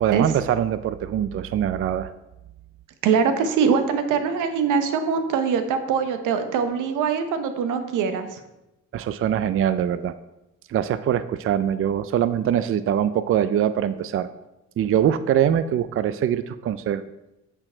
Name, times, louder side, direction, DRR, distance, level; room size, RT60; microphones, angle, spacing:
voice 1, 0.0-2.1 8.9-10.1 10.7-14.3 14.8-17.0, right 10 dB, 45° right, 13 dB, 0.4 m, -23 dB
voice 2, 3.0-8.4, right 6 dB, 85° right, 8 dB, 0.8 m, -23 dB
8.6 x 4.5 x 4.4 m, 0.95 s
cardioid pair, 90°, 30 cm